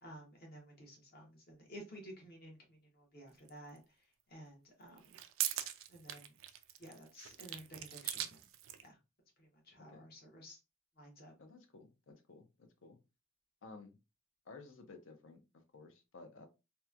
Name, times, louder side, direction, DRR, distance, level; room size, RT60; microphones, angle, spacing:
voice 1, 0.0-3.8 4.3-5.2 5.9-6.3 6.8-8.4 8.8-9.0 9.4-10.6 11.0-11.3, equal, 45° left, 0 dB, 0.9 m, -53 dB
sound 1, 3.5-3.6 4.9-8.9, right 12 dB, 65° right, 0.3 m, -41 dB
voice 2, 11.4-13.0 13.6-14.0 14.5-16.5, left 3 dB, 65° left, 6 dB, 0.6 m, -55 dB
2.9 x 2.2 x 2.3 m, 0.27 s
head